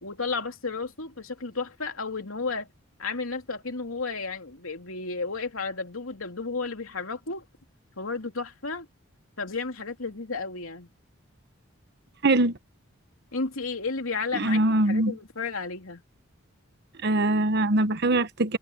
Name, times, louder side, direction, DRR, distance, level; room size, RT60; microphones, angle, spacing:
voice 1, 0.0-2.7 3.0-7.4 8.0-8.9 9.4-10.9 13.3-14.6 14.9-16.0, left 4 dB, 85° left, 3.0 m, -32 dB
voice 2, 12.2-12.6 14.3-15.2 17.0-18.6, right 2 dB, 55° right, 1.1 m, -22 dB
head